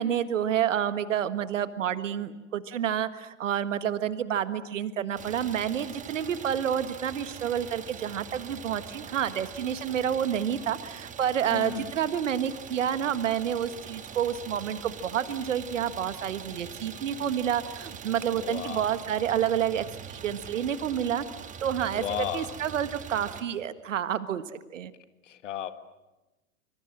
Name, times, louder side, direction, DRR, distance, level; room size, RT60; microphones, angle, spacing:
voice 1, 0.0-21.3 21.6-24.9, right 9 dB, 65° right, 13 dB, 1.6 m, -29 dB
Idling, 5.2-23.4, right 7 dB, 20° right, 1.7 m, -43 dB
voice 2, 11.5-11.9 18.3-18.9 21.9-22.5 25.3-25.7, left 10 dB, 60° left, 11 dB, 1.9 m, -34 dB
26.0 x 26.0 x 7.6 m, 1.0 s
figure-of-eight pair, 100°, 41 cm